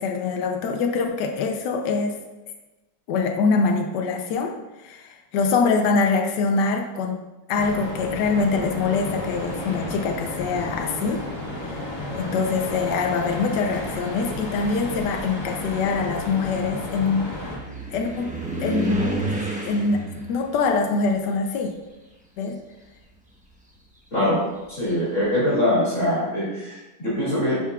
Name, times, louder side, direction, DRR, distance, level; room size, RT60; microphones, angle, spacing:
voice 1, 0.0-2.2 3.1-7.2 7.5-11.2 11.6-11.8 12.1-17.3 17.9-18.3 18.6-19.2 19.7-21.7 22.4-22.6, left 4 dB, 80° left, 3 dB, 1.3 m, -24 dB
sound 1, 7.5-17.6, left 1 dB, 65° left, 1.9 m, -33 dB
sound 2, 10.4-10.8 11.8-11.9 12.5-22.4 22.7-25.3, right 1 dB, 5° right, 0.7 m, -34 dB
voice 2, 24.1-24.4 24.7-27.6, left 1 dB, 45° left, -9 dB, 2.5 m, -23 dB
10.0 x 5.9 x 2.3 m, 1.1 s
omnidirectional pair, 1.8 m